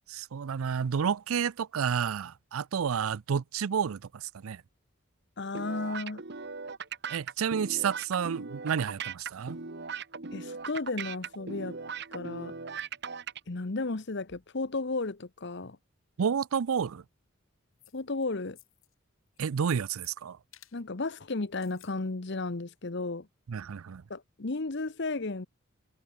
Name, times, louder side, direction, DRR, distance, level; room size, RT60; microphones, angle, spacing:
voice 1, 0.1-4.6 7.1-9.6 16.2-17.0 19.4-20.4 23.5-24.0, right 7 dB, 85° right, 0.5 m, -30 dB
voice 2, 5.4-6.2 10.3-11.8 12.1-12.6 13.5-15.8 17.9-18.6 20.7-23.3 24.1-25.5, left 3 dB, 55° left, 1.0 m, -34 dB
sound 1, 5.5-13.4, right 5 dB, 50° right, 1.3 m, -39 dB
sound 2, 17.8-18.2 18.5-18.9 19.3-20.1 20.5-20.8 21.5-22.0 22.3-22.4, left 14 dB, 75° left, 3.9 m, -57 dB
head